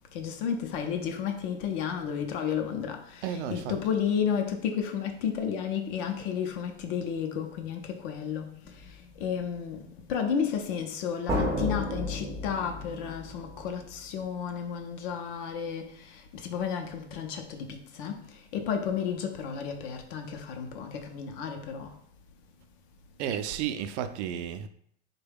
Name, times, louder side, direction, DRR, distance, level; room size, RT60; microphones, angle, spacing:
voice 1, 0.1-22.0, left 7 dB, 45° left, 0.6 m, -32 dB
voice 2, 3.2-3.8 23.2-24.7, right 9 dB, 75° right, 0.5 m, -32 dB
sound 1, 8.7-8.9 11.3-13.9, left 1 dB, 10° right, 0.5 m, -32 dB
3.7 x 2.2 x 3.4 m
supercardioid pair, 145°, 35 cm